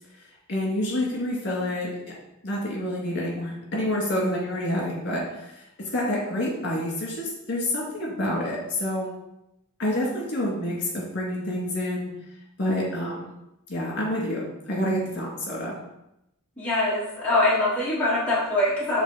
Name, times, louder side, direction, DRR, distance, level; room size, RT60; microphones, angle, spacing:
voice 1, 0.5-1.9 2.4-5.6 5.9-9.1 9.8-12.1 12.6-13.3 13.7-15.8, left 1 dB, 55° left, -3 dB, 2.0 m, -28 dB
voice 2, 16.6-19.0, left 2 dB, 5° left, -8 dB, 1.4 m, -23 dB
7.2 x 3.8 x 3.9 m, 0.86 s
head